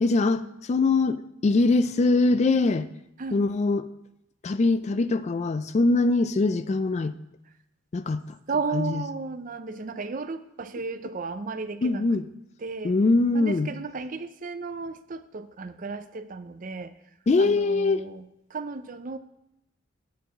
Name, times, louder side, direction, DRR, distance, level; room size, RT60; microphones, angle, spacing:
voice 1, 0.0-2.9 3.3-3.9 4.4-7.2 7.9-8.2 8.7-9.0 11.8-12.2 12.8-13.7 17.3-18.0, left 3 dB, 35° left, 13 dB, 0.3 m, -22 dB
voice 2, 8.5-12.1 12.6-13.0 13.3-16.9 17.4-19.2, right 4 dB, 40° right, 11 dB, 0.5 m, -34 dB
9.3 x 4.7 x 7.4 m, 0.85 s
head